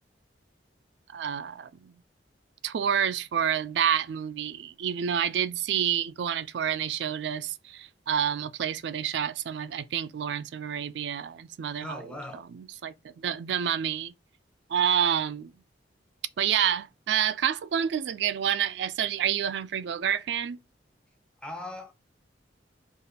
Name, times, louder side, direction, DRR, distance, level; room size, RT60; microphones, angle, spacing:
voice 1, 1.1-1.9 2.6-12.0 12.3-14.1 14.7-15.5 16.4-20.6, right 9 dB, 75° right, 0.4 m, -28 dB
voice 2, 11.8-12.4 21.4-21.9, left 1 dB, 5° left, 0.7 m, -39 dB
4.0 x 2.4 x 3.4 m
head